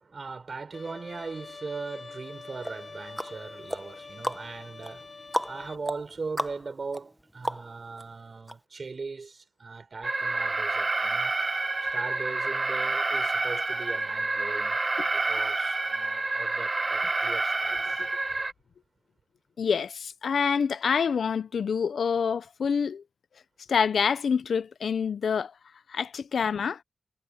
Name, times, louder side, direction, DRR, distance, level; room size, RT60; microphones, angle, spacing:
voice 1, 0.0-5.1 5.5-11.3 11.9-14.8 15.1-17.9, right 4 dB, 50° right, 6.6 m, -39 dB
Bowed string instrument, 0.7-5.8, left 4 dB, 50° left, 3.5 m, -45 dB
sound 1, 2.6-8.0 8.5-8.6, equal, 5° right, 1.0 m, -36 dB
Alarm, 10.0-18.5, right 3 dB, 35° right, 1.0 m, -28 dB
voice 2, 19.6-23.0 23.7-25.5 25.9-26.8, left 6 dB, 85° left, 0.6 m, -26 dB
wide cardioid pair, 100°, 0 cm